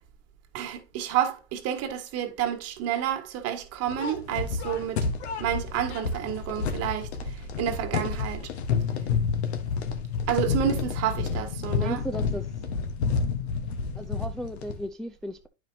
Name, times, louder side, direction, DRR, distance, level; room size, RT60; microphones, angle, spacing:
voice 1, 0.5-5.1 5.4-8.5 10.3-12.0, right 10 dB, 50° right, 1.6 m, -30 dB
sound 1, 3.9-14.8, left 5 dB, 90° left, 1.3 m, -29 dB
voice 2, 11.8-12.5 13.9-15.5, equal, ahead, 0.4 m, -35 dB
9.5 x 5.1 x 2.7 m
supercardioid pair, 105°, 32 cm